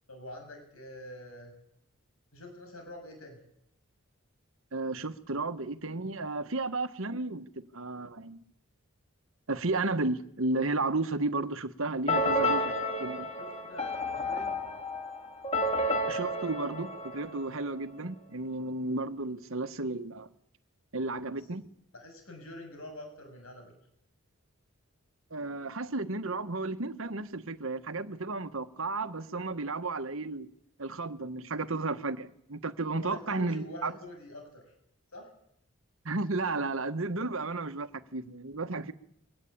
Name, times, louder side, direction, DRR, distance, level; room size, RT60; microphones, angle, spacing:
voice 1, 0.1-1.5 2.3-3.4 12.1-12.3 13.4-14.5 21.9-23.7 33.0-34.6 35.1-35.3, left 1 dB, 75° left, 6.7 m, -46 dB
voice 2, 4.7-8.4 9.5-12.7 13.0-13.3 16.1-20.3 20.9-21.6 25.3-30.5 30.8-33.9 36.0-38.9, right 3 dB, 65° right, 1.4 m, -33 dB
sound 1, 12.1-17.8, left 1 dB, 25° left, 2.3 m, -31 dB
23.0 x 18.0 x 8.7 m
head